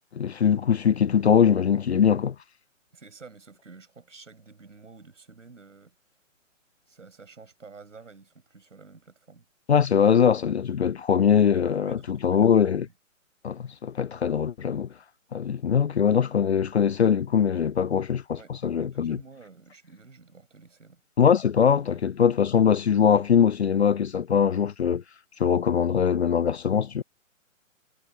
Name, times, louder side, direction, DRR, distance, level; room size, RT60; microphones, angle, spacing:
voice 1, 0.1-2.4 9.7-12.9 13.4-14.9 15.3-19.2 21.2-25.0 25.4-27.0, left 7 dB, 55° left, 0.5 m, -22 dB
voice 2, 2.9-6.0 6.9-9.5 11.5-12.7 18.4-21.0 21.9-22.1, right 4 dB, 65° right, 7.4 m, -50 dB
figure-of-eight pair, 130°, 40 cm